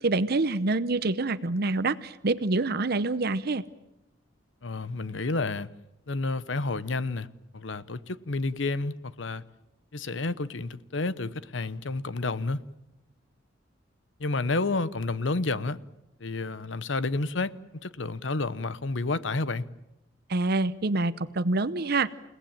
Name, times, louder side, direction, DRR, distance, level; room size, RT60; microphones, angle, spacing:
voice 1, 0.0-3.6 20.3-22.1, right 3 dB, 55° right, 0.8 m, -26 dB
voice 2, 4.6-5.7 6.1-7.3 7.5-9.4 9.9-12.6 14.2-15.8 16.2-17.5 17.8-19.7, left 3 dB, 75° left, 0.9 m, -30 dB
29.5 x 18.0 x 9.0 m
head